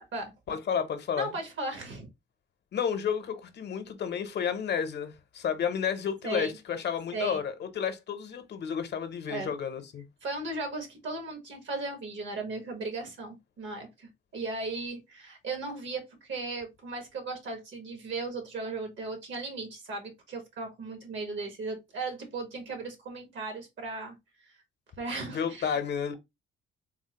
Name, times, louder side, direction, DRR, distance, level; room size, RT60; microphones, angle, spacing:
voice 1, 0.5-1.3 2.7-10.0 25.3-26.1, left 7 dB, 60° left, 0.7 m, -31 dB
voice 2, 1.2-2.1 6.2-6.6 7.1-7.4 9.3-9.5 10.2-24.2 25.0-25.8, right 3 dB, 70° right, 1.2 m, -36 dB
3.6 x 2.0 x 2.8 m
cardioid pair, 90°, 20 cm